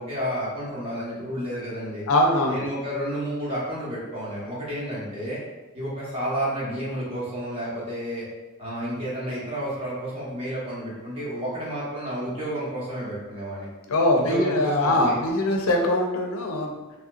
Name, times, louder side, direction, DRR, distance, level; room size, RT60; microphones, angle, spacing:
voice 1, 0.0-2.1 2.5-5.4 5.7-8.2 8.6-13.7 14.1-15.2, equal, 25° right, -8 dB, 1.0 m, -31 dB
voice 2, 2.1-2.6 13.9-16.8, left 1 dB, 70° left, 2 dB, 0.5 m, -22 dB
3.2 x 2.8 x 2.4 m, 1.1 s
head